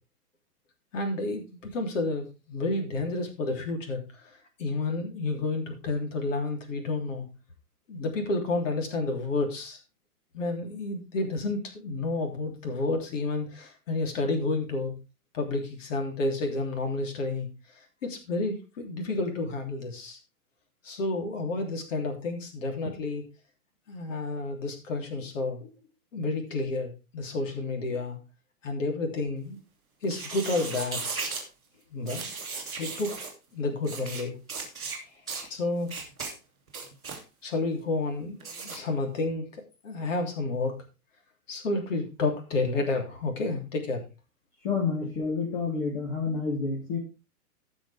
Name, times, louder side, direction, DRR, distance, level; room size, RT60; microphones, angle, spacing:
voice 1, 0.9-4.0 4.6-7.3 7.9-9.8 10.3-14.9 15.3-17.5 18.0-20.2 20.8-23.2 23.9-25.7 26.1-28.2 28.6-29.6 30.0-31.2 31.9-32.2 32.8-33.1 33.5-34.4 35.5-36.0 37.4-40.8 41.5-44.0, left 2 dB, 55° left, 3 dB, 3.3 m, -30 dB
sound 1, 30.0-31.4 32.1-33.3 33.8-34.2 34.5-35.0 35.3-35.5 35.9-36.3 36.7-37.2 38.4-38.8, right 4 dB, 5° right, 0.4 m, -36 dB
voice 2, 44.6-47.0, left 4 dB, 35° left, -4 dB, 3.2 m, -29 dB
16.0 x 6.3 x 3.4 m, 0.28 s
hypercardioid pair, 165°, 45 cm